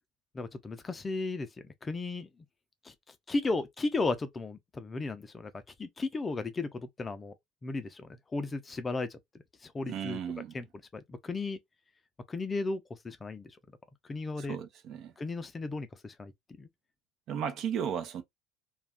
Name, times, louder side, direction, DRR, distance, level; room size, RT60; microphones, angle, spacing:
voice 1, 0.3-1.5 1.8-2.3 2.8-2.9 3.3-5.5 5.8-7.3 7.6-9.2 9.6-10.2 10.5-10.7 10.9-11.6 12.3-13.5 14.1-14.6 15.2-16.3 16.6-16.7, left 3 dB, 25° left, 0.5 m, -34 dB
voice 2, 9.9-10.5 14.4-15.1 17.3-18.2, right 8 dB, 55° right, 0.7 m, -35 dB
2.4 x 2.3 x 3.5 m
supercardioid pair, 90°, 0 cm